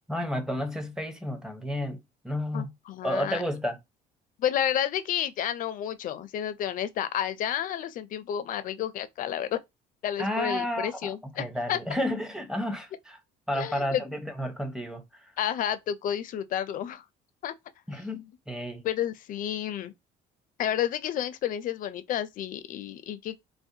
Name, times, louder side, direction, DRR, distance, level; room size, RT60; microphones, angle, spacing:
voice 1, 0.1-2.7 3.0-3.8 10.2-13.2 13.5-15.3 17.9-18.8, equal, 5° right, 0.6 m, -32 dB
voice 2, 2.5-3.4 4.4-9.6 10.0-11.8 13.5-14.0 15.4-17.0 17.4-17.5 18.8-19.9 20.6-23.4, left 10 dB, 55° left, 0.4 m, -31 dB
2.3 x 2.0 x 2.7 m
cardioid pair, 110°, 17 cm